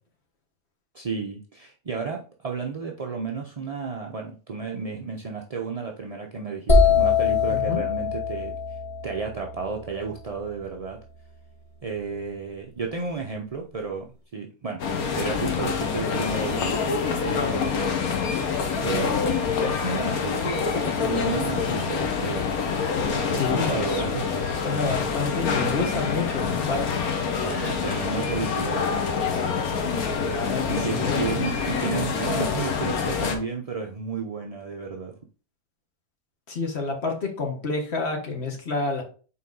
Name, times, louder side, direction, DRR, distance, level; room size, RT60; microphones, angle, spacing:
voice 1, 0.9-8.5 9.0-11.0 11.8-14.8 15.1-17.9 18.8-19.1 19.6-22.5 23.1-24.4 27.2-29.0 30.7-35.1, right 4 dB, 45° right, 1 dB, 0.4 m, -32 dB
sound 1, 6.7-10.5, left 5 dB, 25° left, 1.0 m, -23 dB
voice 2, 7.5-7.8 23.3-24.0 24.6-27.0 30.1-31.3 36.5-39.0, left 3 dB, 45° left, 2 dB, 1.7 m, -29 dB
sound 2, 14.8-33.4, left 5 dB, 75° left, 1.5 m, -26 dB
5.6 x 4.3 x 3.9 m, 0.37 s
omnidirectional pair, 1.6 m